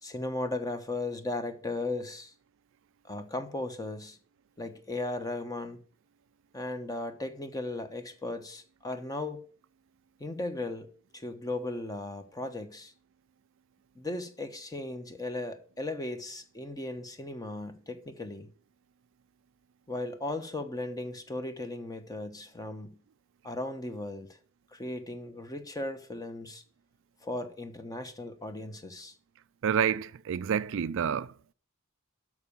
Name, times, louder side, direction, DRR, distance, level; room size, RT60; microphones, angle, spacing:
voice 1, 0.0-2.3 3.0-4.2 4.6-5.8 6.5-9.4 10.2-10.9 11.1-12.9 13.9-18.5 19.9-23.0 23.4-24.3 24.7-26.6 27.2-29.1, left 2 dB, 15° left, 1.1 m, -36 dB
voice 2, 29.6-31.5, right 8 dB, 65° right, 0.4 m, -29 dB
12.5 x 4.8 x 7.0 m
head